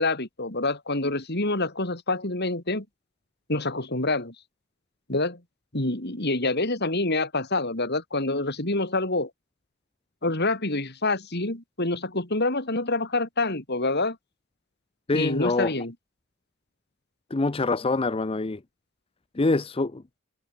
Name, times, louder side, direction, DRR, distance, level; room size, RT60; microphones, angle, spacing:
voice 1, 0.0-2.9 3.5-4.3 5.1-5.4 5.7-9.3 10.2-14.2 15.1-15.9, left 2 dB, 50° left, 4.0 m, -27 dB
voice 2, 15.1-15.7 17.3-18.6 19.4-20.0, left 3 dB, 25° left, 0.6 m, -25 dB
head